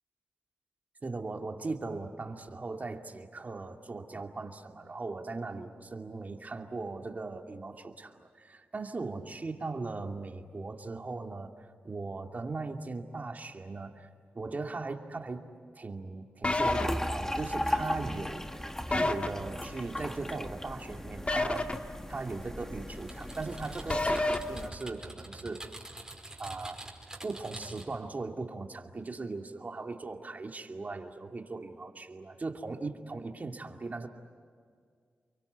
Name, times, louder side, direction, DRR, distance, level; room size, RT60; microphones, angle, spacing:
voice 1, 1.0-14.1 14.3-15.5 15.7-25.6 26.4-26.8 27.2-34.1, right 3 dB, 45° right, 4 dB, 2.5 m, -39 dB
sound 1, 16.4-16.8 18.9-19.3 21.3-21.7 23.9-24.4, left 2 dB, 30° left, 1.8 m, -27 dB
sound 2, 16.6-24.7, left 1 dB, 10° left, 1.6 m, -37 dB
Typing, 23.1-28.0, right 2 dB, 15° right, 5.2 m, -46 dB
29.5 x 23.5 x 8.2 m, 2.1 s
cardioid pair, 70°, 4 cm